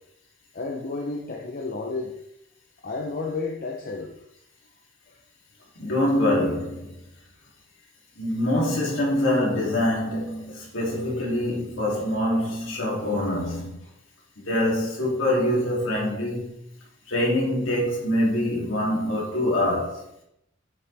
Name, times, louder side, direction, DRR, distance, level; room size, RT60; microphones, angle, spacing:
voice 1, 0.5-2.1 2.8-4.1 5.1-5.2, left 3 dB, 45° left, 0.8 m, -31 dB
voice 2, 5.8-7.0 8.2-13.8 14.4-16.5 17.1-20.0, left 1 dB, 75° left, 3.0 m, -25 dB
8.6 x 7.0 x 3.5 m
head